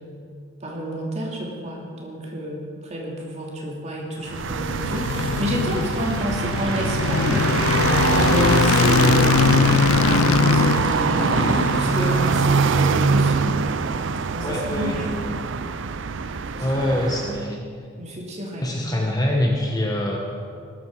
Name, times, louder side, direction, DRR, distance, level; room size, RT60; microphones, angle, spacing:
voice 1, 0.6-7.5 8.2-13.6 14.3-15.4 16.5-16.7 18.0-18.8, equal, 35° right, -2 dB, 2.7 m, -29 dB
sound 1, 4.2-17.5, right 5 dB, 60° right, 0.5 m, -23 dB
sound 2, 4.4-12.8, left 6 dB, 85° left, 0.4 m, -22 dB
voice 2, 14.4-15.0 16.6-17.6 18.6-20.2, left 1 dB, 20° left, 0 dB, 1.3 m, -24 dB
19.0 x 12.5 x 4.8 m, 2.3 s
head